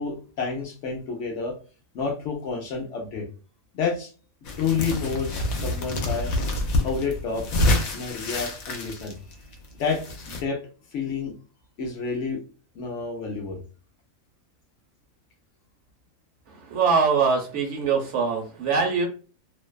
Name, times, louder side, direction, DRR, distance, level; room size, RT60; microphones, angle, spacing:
voice 1, 0.0-1.5 1.9-3.3 3.7-4.1 4.6-6.3 6.8-7.5 7.9-9.1 9.8-10.6 10.9-11.3 11.8-12.4 12.7-13.6, left 5 dB, 65° left, 2 dB, 0.9 m, -29 dB
sound 1, 4.5-10.4, left 1 dB, 85° left, 1.0 m, -27 dB
voice 2, 16.5-19.1, right 5 dB, 65° right, 2 dB, 0.8 m, -23 dB
2.5 x 2.2 x 2.2 m, 0.37 s
omnidirectional pair, 1.5 m